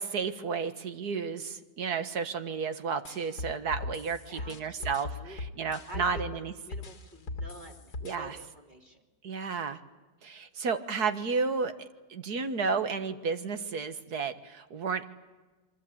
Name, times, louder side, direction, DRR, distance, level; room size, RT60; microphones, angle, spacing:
voice 1, 0.0-6.5 8.0-8.4 9.2-9.8 10.2-15.0, right 5 dB, 60° right, 10 dB, 1.9 m, -32 dB
sound 1, 3.0-6.4 6.7-8.1, left 3 dB, 60° left, 2.4 m, -38 dB
voice 2, 4.3-9.0, right 1 dB, 25° right, 1 dB, 3.1 m, -49 dB
27.0 x 24.5 x 8.7 m, 1.2 s
omnidirectional pair, 1.9 m